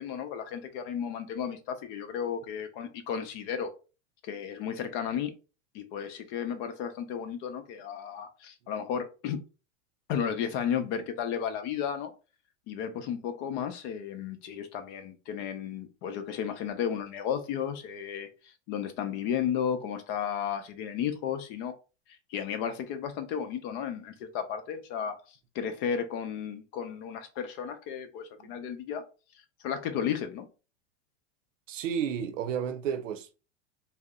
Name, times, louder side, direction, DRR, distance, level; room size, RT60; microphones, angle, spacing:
voice 1, 0.0-3.7 4.2-5.3 5.7-9.4 10.1-12.1 12.7-21.7 22.3-29.0 29.6-30.5, left 8 dB, 50° left, 0.7 m, -33 dB
voice 2, 31.7-33.3, right 8 dB, 75° right, 0.6 m, -32 dB
2.7 x 2.1 x 3.5 m
hypercardioid pair, 115°, 38 cm